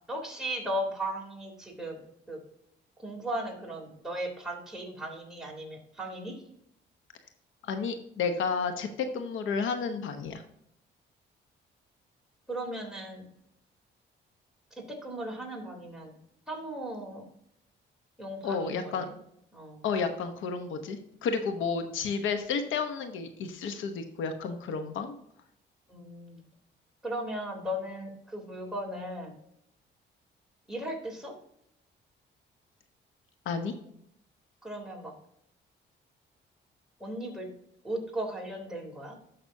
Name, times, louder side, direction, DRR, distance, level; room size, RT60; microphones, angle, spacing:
voice 1, 0.1-2.0 2.3-2.4 3.0-6.4 12.5-13.3 14.8-16.1 16.5-17.2 18.2-19.1 19.5-19.8 25.9-26.4 27.0-29.4 30.7-31.3 34.6-35.1 37.0-37.5 37.8-39.2, right 1 dB, 5° right, -1 dB, 3.2 m, -36 dB
voice 2, 7.7-8.9 9.1-10.4 18.4-19.0 19.8-25.2 33.5-33.7, left 5 dB, 85° left, 7 dB, 1.0 m, -31 dB
12.5 x 5.9 x 2.7 m, 0.74 s
cardioid pair, 90°, 20 cm